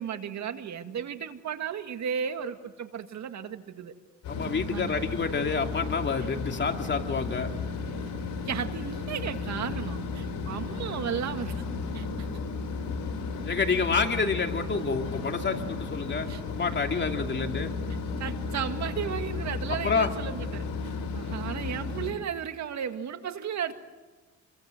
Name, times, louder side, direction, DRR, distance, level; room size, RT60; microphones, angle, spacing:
voice 1, 0.0-3.9 4.7-5.1 8.5-11.6 11.9-12.3 16.3-16.4 18.2-23.7, right 8 dB, 65° right, 8 dB, 2.0 m, -34 dB
sound 1, 4.2-22.1, left 4 dB, 75° left, 5.9 m, -34 dB
voice 2, 4.3-7.5 13.4-17.7 19.8-20.1, left 5 dB, 35° left, 4 dB, 2.7 m, -28 dB
27.5 x 23.0 x 7.9 m, 1.3 s
cardioid pair, 90°, 30 cm